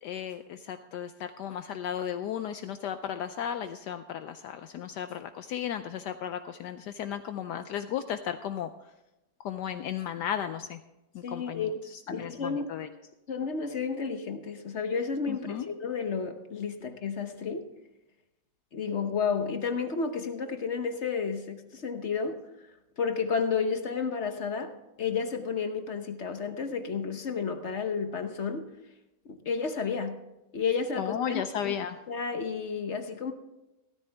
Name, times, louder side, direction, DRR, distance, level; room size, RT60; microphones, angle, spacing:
voice 1, 0.0-8.7 9.4-10.8 11.1-12.9 15.3-15.7 31.0-32.0, left 9 dB, 75° left, 9 dB, 1.2 m, -35 dB
voice 2, 11.2-11.8 12.1-12.7 13.3-17.7 18.7-22.4 23.0-28.7 29.3-30.2 30.5-31.7 32.1-33.3, left 5 dB, 45° left, 7 dB, 1.1 m, -31 dB
16.0 x 13.5 x 3.4 m, 0.95 s
omnidirectional pair, 2.0 m